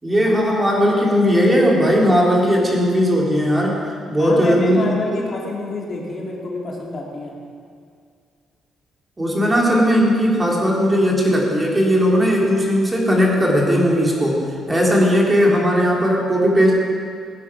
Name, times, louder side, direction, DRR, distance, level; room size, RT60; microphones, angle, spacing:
voice 1, 0.0-3.8 4.1-4.9 9.2-14.4 14.7-16.7, equal, 20° right, -2 dB, 3.3 m, -17 dB
voice 2, 4.2-7.3, left 2 dB, 45° left, -1 dB, 2.6 m, -28 dB
16.5 x 10.0 x 6.1 m, 2.3 s
cardioid pair, 90°, 0 cm